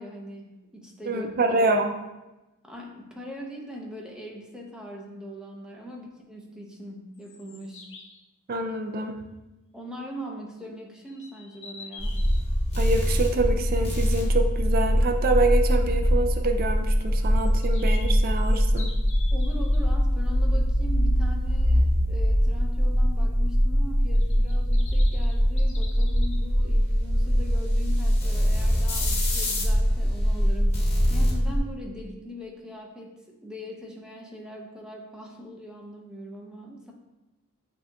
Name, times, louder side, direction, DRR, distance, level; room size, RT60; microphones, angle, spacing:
voice 1, 0.0-1.3 2.6-7.9 9.7-12.2 19.3-36.9, equal, 5° right, -2 dB, 0.6 m, -41 dB
voice 2, 1.1-1.9 5.8-5.9 8.5-9.2 12.8-18.9, right 2 dB, 40° right, 4 dB, 0.4 m, -26 dB
sound 1, 7.1-8.2 11.1-12.4 17.2-19.8 24.1-26.4, left 4 dB, 55° left, 0.7 m, -46 dB
sound 2, 12.0-31.6, equal, 30° left, 1.0 m, -23 dB
7.7 x 2.9 x 2.3 m, 1.0 s
head